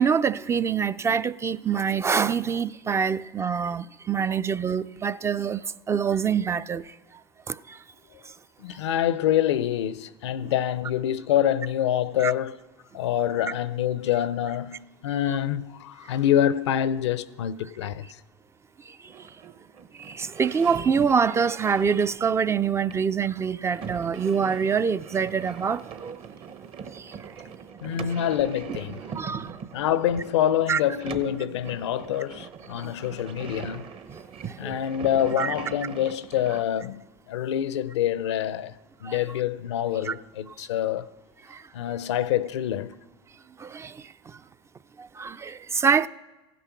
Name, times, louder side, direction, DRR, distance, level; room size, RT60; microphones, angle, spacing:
voice 1, 0.0-6.8 7.5-7.8 10.4-10.5 12.2-12.3 20.0-26.2 26.9-27.1 29.1-29.5 30.7-30.8 34.4-34.7 35.4-35.5 39.0-39.2 40.1-40.2 41.5-41.6 43.6-44.1 45.0-46.1, right 6 dB, 20° right, 0.3 m, -25 dB
voice 2, 8.6-12.6 12.9-18.2 27.8-29.0 29.7-33.9 34.6-38.7 39.0-41.1 41.7-43.0, left 11 dB, 85° left, 0.6 m, -26 dB
sound 1, 19.0-36.6, right 7 dB, 40° right, 0.9 m, -41 dB
15.5 x 9.2 x 5.9 m
hypercardioid pair, 100°, 14 cm